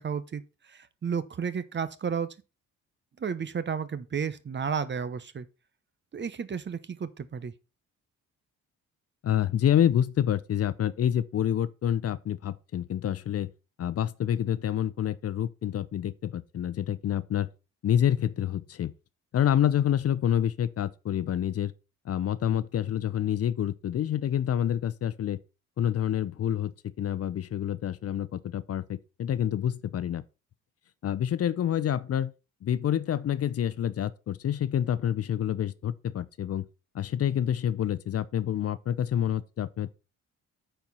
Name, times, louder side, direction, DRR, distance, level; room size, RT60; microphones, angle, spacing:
voice 1, 0.0-2.3 3.2-5.5 6.1-7.5, right 6 dB, 35° right, 1.0 m, -32 dB
voice 2, 9.2-13.5 13.8-17.5 17.8-18.9 19.3-21.7 22.0-25.4 25.8-30.2 31.0-32.3 32.6-36.6 36.9-39.9, left 10 dB, 55° left, 0.7 m, -27 dB
8.9 x 4.5 x 5.5 m
cardioid pair, 90°, 30 cm